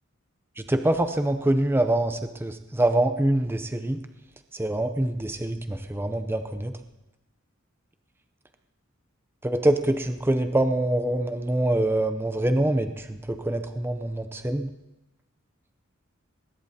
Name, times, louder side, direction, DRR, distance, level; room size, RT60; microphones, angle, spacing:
voice 1, 0.6-4.0 4.5-6.7 9.4-14.7, right 1 dB, 10° right, 8 dB, 0.6 m, -25 dB
21.0 x 19.5 x 2.8 m, 0.95 s
head